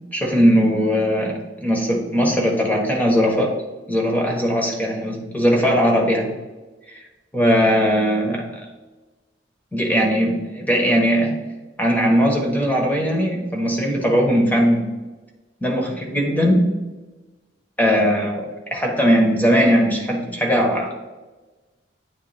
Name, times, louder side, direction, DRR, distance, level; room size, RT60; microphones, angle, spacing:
voice 1, 0.1-1.3 1.6-3.5 3.9-6.3 6.9-7.0 7.3-8.7 9.7-11.3 11.8-14.9 15.6-16.8 17.8-20.9, equal, 10° left, 0 dB, 1.1 m, -19 dB
9.2 x 3.2 x 3.4 m, 1.2 s
head